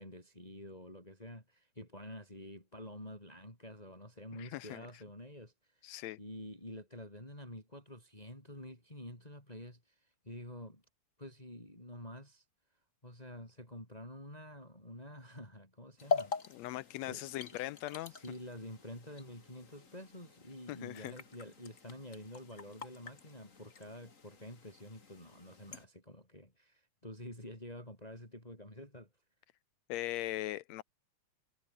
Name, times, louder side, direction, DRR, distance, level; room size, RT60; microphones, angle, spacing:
voice 1, 0.0-10.8 11.2-12.4 13.0-16.3 17.0-17.3 17.5-17.7 18.0-29.1, left 1 dB, 10° left, 7.5 m, -49 dB
voice 2, 4.4-4.9 5.8-6.2 16.5-18.1 20.7-21.1 29.9-30.8, left 16 dB, 80° left, 1.7 m, -40 dB
sound 1, 16.0-25.8, left 5 dB, 30° left, 1.9 m, -43 dB
omnidirectional pair, 3.5 m